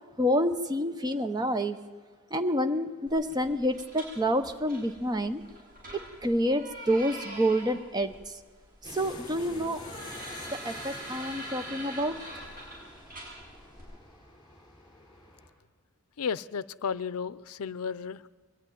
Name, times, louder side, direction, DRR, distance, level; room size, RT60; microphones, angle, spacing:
voice 1, 0.2-1.8 2.3-5.4 6.2-8.4 8.8-9.8 10.6-12.2, equal, 20° right, 8 dB, 0.7 m, -28 dB
sound 1, 3.1-13.8, right 1 dB, 40° right, 7.9 m, -44 dB
sound 2, 8.8-15.5, left 2 dB, 20° left, 3.3 m, -47 dB
voice 2, 16.2-18.2, left 6 dB, 85° left, 18 dB, 0.5 m, -33 dB
22.0 x 12.0 x 9.9 m, 1.5 s
head